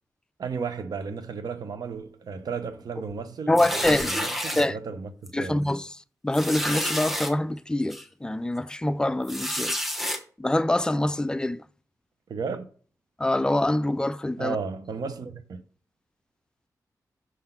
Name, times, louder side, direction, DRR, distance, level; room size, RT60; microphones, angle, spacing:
voice 1, 0.4-5.6 12.3-12.6 14.4-15.6, right 5 dB, 75° right, 0.8 m, -34 dB
voice 2, 3.5-4.1 4.6-4.8 5.3-5.9 6.2-9.7 10.4-11.6 13.2-14.6, left 1 dB, 10° left, 0.3 m, -25 dB
sound 1, 3.6-4.7 5.3-5.4 5.7-5.8 6.3-7.3 7.9-8.0 9.2-10.2, equal, 5° right, 1.1 m, -29 dB
6.4 x 3.9 x 5.8 m
wide cardioid pair, 105°, 7 cm